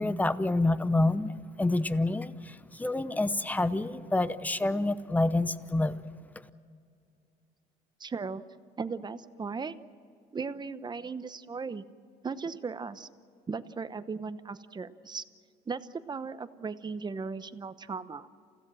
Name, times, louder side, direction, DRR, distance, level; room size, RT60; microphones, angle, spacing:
voice 1, 0.0-1.3 1.6-6.0, left 2 dB, 10° left, 14 dB, 0.8 m, -27 dB
voice 2, 8.0-8.4 8.8-9.8 10.3-11.8 12.2-13.1 13.5-15.2 15.7-18.3, right 5 dB, 25° right, 12 dB, 0.9 m, -37 dB
28.5 x 16.5 x 7.7 m, 2.3 s
cardioid pair, 110°, 17 cm